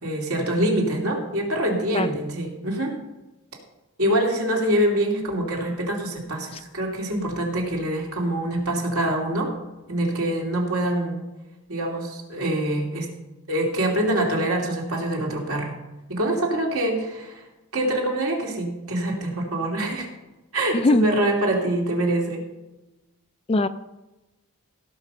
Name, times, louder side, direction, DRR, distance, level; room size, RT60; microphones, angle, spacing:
voice 1, 0.0-2.9 4.0-9.5 9.9-11.2 11.7-13.1 13.5-15.7 16.1-17.4 17.7-20.1 20.5-22.4, right 1 dB, 75° right, -1 dB, 3.0 m, -25 dB
voice 2, 20.7-21.0 23.5-23.7, left 2 dB, 25° left, 12 dB, 0.4 m, -20 dB
17.0 x 6.0 x 5.6 m, 1.0 s
head